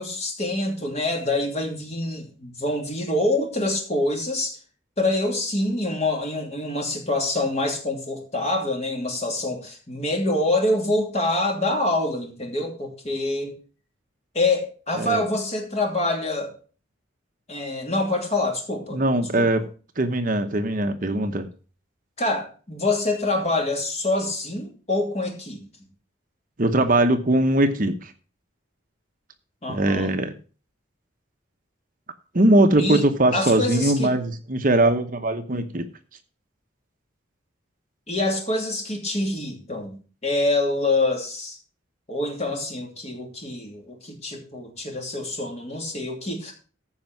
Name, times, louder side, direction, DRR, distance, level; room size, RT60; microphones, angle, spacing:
voice 1, 0.0-4.6 5.0-13.6 14.3-16.5 17.5-19.0 19.4-19.5 22.2-25.6 29.6-30.2 32.8-33.1 33.3-34.2 38.1-39.9 40.2-41.6 42.1-46.5, left 2 dB, 35° left, 1 dB, 2.9 m, -26 dB
voice 2, 18.9-19.6 20.0-21.5 26.6-28.1 29.7-30.3 32.3-35.9, right 1 dB, 40° right, 7 dB, 0.9 m, -21 dB
14.5 x 5.3 x 5.9 m, 0.37 s
head